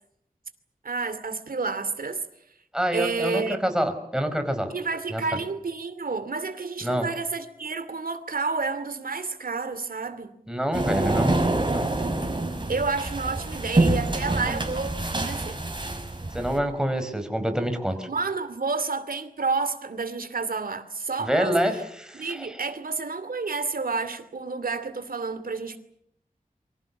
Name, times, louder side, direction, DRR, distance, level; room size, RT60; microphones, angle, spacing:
voice 1, 0.8-2.2 2.9-3.6 4.7-10.3 12.7-15.6 18.1-21.6 22.1-25.8, right 4 dB, 85° right, 11 dB, 2.6 m, -30 dB
voice 2, 2.7-4.7 5.1-5.4 6.8-7.1 10.5-11.4 11.7-11.9 16.3-18.1 21.2-22.6, equal, 5° right, 7 dB, 4.8 m, -27 dB
sound 1, 10.7-16.6, right 2 dB, 35° right, 5.5 m, -26 dB
27.5 x 24.5 x 7.2 m, 0.74 s
wide cardioid pair, 80°, 14 cm